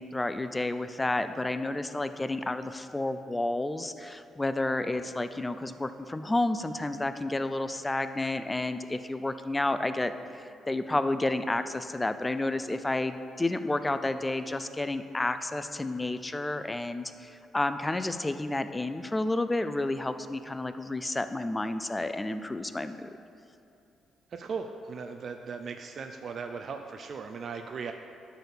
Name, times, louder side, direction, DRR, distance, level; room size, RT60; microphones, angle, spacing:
voice 1, 0.0-23.1, left 2 dB, 15° left, 11 dB, 0.4 m, -31 dB
voice 2, 24.3-27.9, right 5 dB, 50° right, 5 dB, 0.5 m, -38 dB
10.5 x 4.2 x 7.0 m, 2.7 s
cardioid pair, 90°, 0 cm